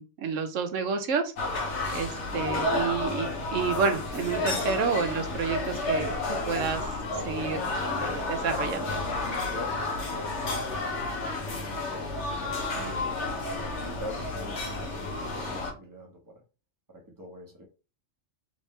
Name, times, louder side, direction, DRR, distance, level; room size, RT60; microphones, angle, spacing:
voice 1, 0.0-1.3 1.9-6.1 6.5-6.8 7.2-7.7 8.0-8.9, right 5 dB, 85° right, 1.1 m, -29 dB
sound 1, 1.4-15.7, left 2 dB, 70° left, 1.3 m, -31 dB
voice 2, 9.5-12.2 12.9-16.4 16.9-17.7, left 1 dB, 15° right, 1.0 m, -44 dB
3.6 x 3.1 x 3.1 m
omnidirectional pair, 1.3 m